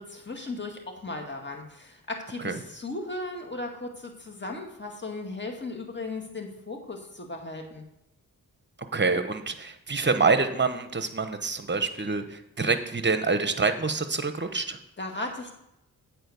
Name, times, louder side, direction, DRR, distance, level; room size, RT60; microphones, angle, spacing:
voice 1, 0.0-7.8 15.0-15.5, left 2 dB, 30° left, 2 dB, 2.1 m, -36 dB
voice 2, 8.9-14.8, right 4 dB, 30° right, 9 dB, 1.0 m, -26 dB
8.8 x 4.5 x 7.0 m, 0.84 s
cardioid pair, 50°, 36 cm